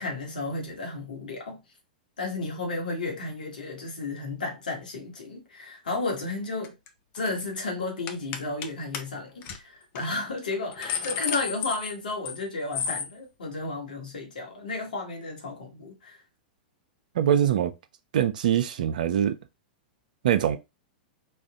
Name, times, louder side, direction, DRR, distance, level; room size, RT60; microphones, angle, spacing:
voice 1, 0.0-1.6 2.2-6.7 7.1-16.2, left 3 dB, 75° left, 1.9 m, -33 dB
sound 1, 6.6-6.9 7.1-7.4 8.1-8.7 8.9-9.0 9.4-9.6 10.0-10.1 10.5-12.4 12.7-13.1, left 8 dB, 45° left, 0.8 m, -32 dB
voice 2, 17.2-17.7 18.1-19.4 20.2-20.6, right 9 dB, 70° right, 0.6 m, -23 dB
4.2 x 2.5 x 3.7 m
hypercardioid pair, 105°, 5 cm